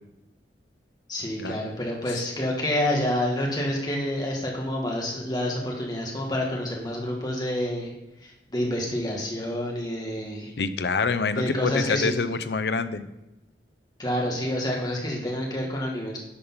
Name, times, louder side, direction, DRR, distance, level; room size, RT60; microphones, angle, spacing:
voice 1, 1.1-7.9 8.5-10.5 11.4-12.1 14.0-16.2, left 1 dB, 20° left, -1 dB, 1.7 m, -28 dB
voice 2, 10.6-13.1, left 4 dB, 70° left, 12 dB, 0.6 m, -26 dB
10.0 x 5.1 x 5.6 m, 0.94 s
head